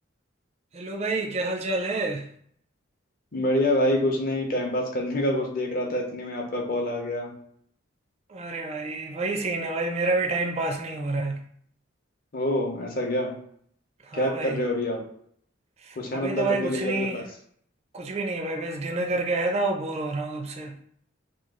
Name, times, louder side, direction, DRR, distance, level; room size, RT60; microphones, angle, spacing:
voice 1, 0.7-2.3 8.3-11.4 14.0-14.6 15.8-17.2 17.9-20.8, right 2 dB, 35° right, 0.4 m, -28 dB
voice 2, 3.3-7.3 12.3-13.3 14.1-15.0 16.0-17.2, left 1 dB, 45° left, 0.7 m, -26 dB
3.0 x 2.3 x 3.6 m
head